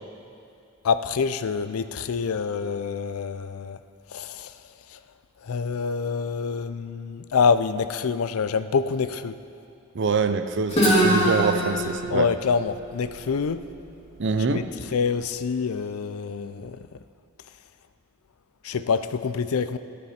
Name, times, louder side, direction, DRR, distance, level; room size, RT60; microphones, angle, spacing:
voice 1, 0.8-3.8 4.1-4.5 5.5-9.3 12.1-13.6 14.5-14.6 14.9-16.8 18.6-19.8, left 5 dB, 80° left, 12 dB, 0.5 m, -26 dB
voice 2, 9.9-12.3 14.2-14.7, right 4 dB, 55° right, 10 dB, 0.6 m, -25 dB
Guitar, 10.7-14.5, equal, 30° left, 2.1 m, -25 dB
14.0 x 11.5 x 4.3 m, 2.5 s
head